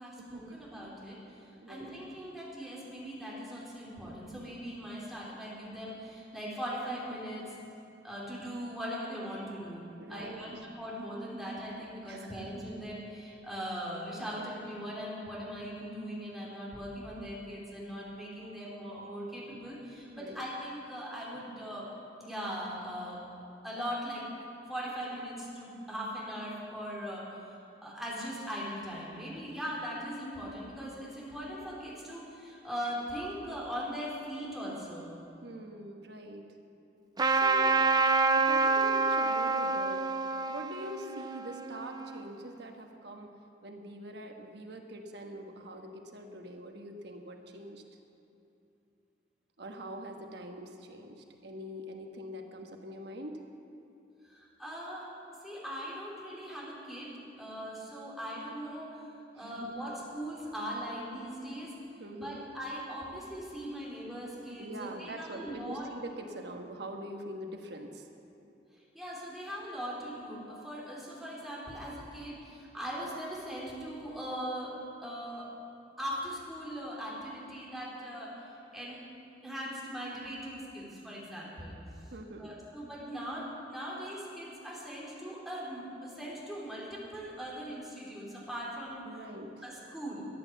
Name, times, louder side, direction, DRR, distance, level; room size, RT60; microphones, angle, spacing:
voice 1, 0.0-7.6 8.0-21.9 22.2-23.2 23.6-24.3 24.7-27.4 27.8-35.1 54.2-55.1 55.4-59.0 59.3-61.7 62.1-65.9 68.9-74.7 75.0-75.5 76.0-79.0 79.4-81.8 82.4-89.0 89.6-90.3, equal, ahead, -6 dB, 3.1 m, -40 dB
voice 2, 1.6-2.0 10.0-10.5 12.1-12.4 20.1-20.4 35.4-36.4 37.3-40.1 40.5-43.3 43.6-47.8 49.6-53.4 59.4-59.7 62.0-62.4 64.6-68.1 82.1-82.5 89.0-89.5, right 1 dB, 65° right, 3 dB, 1.3 m, -43 dB
Trumpet, 37.2-42.2, right 4 dB, 25° right, 0.5 m, -27 dB
13.5 x 9.5 x 7.1 m, 2.8 s
head